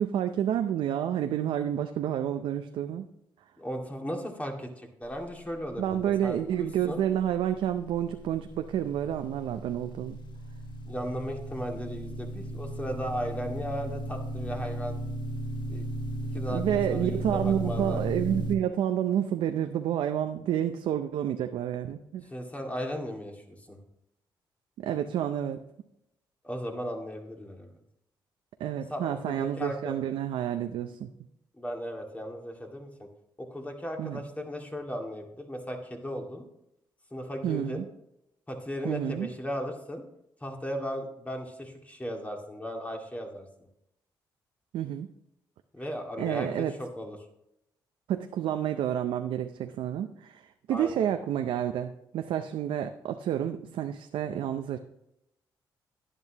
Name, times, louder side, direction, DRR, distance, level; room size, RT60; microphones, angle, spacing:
voice 1, 0.0-3.1 5.8-10.2 16.5-22.2 24.8-25.6 28.6-31.1 34.0-34.2 37.4-37.9 38.8-39.3 44.7-45.1 46.2-46.7 48.1-50.4 50.7-54.8, right 10 dB, 85° right, 7 dB, 0.5 m, -29 dB
voice 2, 3.6-7.0 10.8-15.0 15.7-15.9 16.3-18.0 22.3-23.8 26.4-27.8 28.9-30.0 31.6-33.1 33.4-36.4 37.1-37.8 38.5-40.0 40.4-43.5 45.7-47.2 50.7-51.1, equal, 15° left, 2 dB, 2.1 m, -36 dB
sound 1, 7.7-18.6, right 1 dB, 65° left, 1.3 m, -35 dB
11.0 x 10.0 x 2.9 m, 0.81 s
cardioid pair, 70°, 9 cm